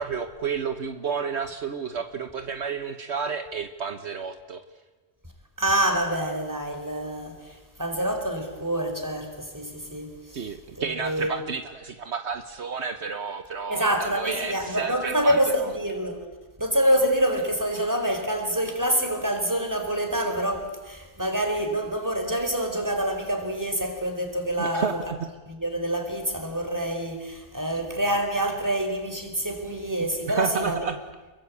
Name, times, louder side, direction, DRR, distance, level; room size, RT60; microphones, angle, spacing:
voice 1, 0.0-4.6 10.3-15.7 24.6-25.2 30.2-30.9, right 6 dB, 65° right, 1.4 m, -31 dB
voice 2, 5.6-10.4 10.8-11.3 13.7-16.2 16.6-25.0 25.5-30.8, right 1 dB, 15° right, 4.5 m, -26 dB
28.5 x 22.0 x 8.6 m
omnidirectional pair, 1.2 m